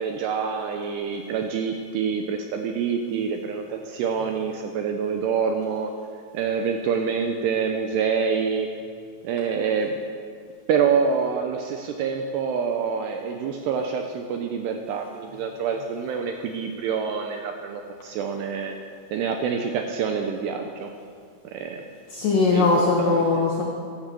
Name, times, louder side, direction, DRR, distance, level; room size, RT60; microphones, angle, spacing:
voice 1, 0.0-5.9 6.3-8.7 9.2-10.0 10.7-18.8 19.1-20.9 21.5-21.8 22.5-23.5, right 6 dB, 80° right, 4 dB, 2.5 m, -26 dB
voice 2, 22.1-23.6, left 3 dB, 65° left, -2 dB, 2.2 m, -20 dB
11.5 x 11.5 x 7.6 m, 2.1 s
omnidirectional pair, 5.6 m